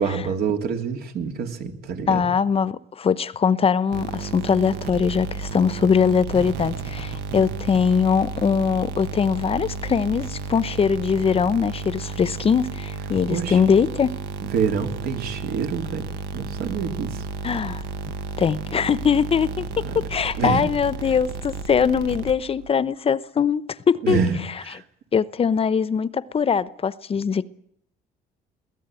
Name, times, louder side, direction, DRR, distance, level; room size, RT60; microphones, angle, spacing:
voice 1, 0.0-2.3 7.3-7.5 13.3-13.6 14.5-17.2 19.8-20.0 20.4-20.7 24.0-24.8, right 6 dB, 70° right, 3.2 m, -27 dB
voice 2, 2.1-14.1 17.4-17.8 18.4-19.7 20.1-23.6 23.9-24.2 25.1-27.5, left 6 dB, 35° left, 0.8 m, -21 dB
sound 1, 3.9-22.7, right 5 dB, 85° right, 1.5 m, -33 dB
22.5 x 17.0 x 9.1 m
cardioid pair, 110°, 17 cm